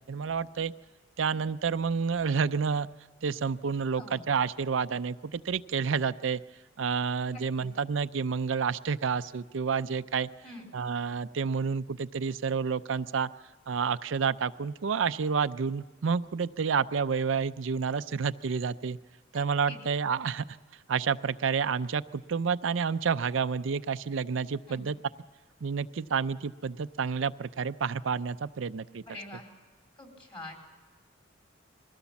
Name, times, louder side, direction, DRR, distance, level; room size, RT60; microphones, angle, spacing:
voice 1, 0.1-0.7 1.2-2.9 3.2-6.4 6.8-10.3 10.7-13.3 13.7-19.0 19.3-20.4 20.9-25.0 25.6-29.0, right 6 dB, 75° right, 12 dB, 0.5 m, -29 dB
voice 2, 3.9-4.2 7.3-7.7 10.4-10.7 19.3-19.8 24.7-24.9 29.1-29.5 30.0-30.6, left 1 dB, 30° left, 1 dB, 4.2 m, -45 dB
21.5 x 17.0 x 7.1 m, 1.4 s
head